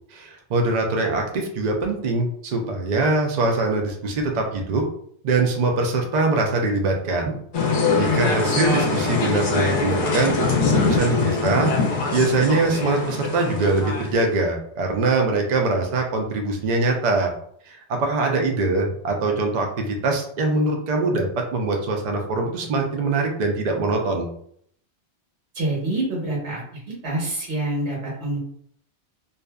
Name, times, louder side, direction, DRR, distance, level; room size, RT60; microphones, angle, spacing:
voice 1, 0.1-4.8 5.2-7.4 7.7-10.5 10.8-11.7 12.1-17.3 17.7-24.3, right 3 dB, 55° right, 2 dB, 0.5 m, -23 dB
sound 1, 7.5-14.3, left 4 dB, 55° left, 0.7 m, -23 dB
voice 2, 25.5-26.6 27.0-28.4, right 2 dB, 80° right, -4 dB, 1.3 m, -26 dB
2.6 x 2.4 x 2.2 m, 0.65 s
omnidirectional pair, 1.1 m